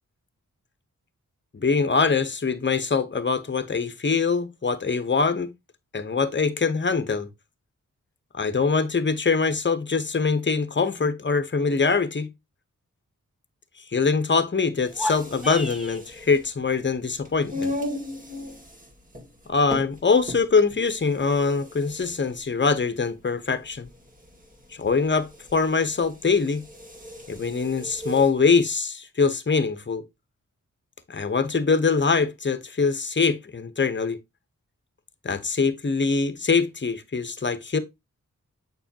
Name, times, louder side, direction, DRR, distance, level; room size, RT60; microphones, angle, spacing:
voice 1, 1.5-5.5 5.9-7.3 8.3-12.3 13.9-17.7 19.5-23.9 24.7-26.6 27.3-30.0 31.1-34.2 35.2-37.8, left 4 dB, 35° left, 1.0 m, -23 dB
sound 1, 14.8-16.0, left 1 dB, ahead, 1.3 m, -32 dB
sound 2, 14.8-28.4, left 1 dB, 25° right, 2.4 m, -38 dB
6.9 x 5.6 x 2.9 m
cardioid pair, 40°, 33 cm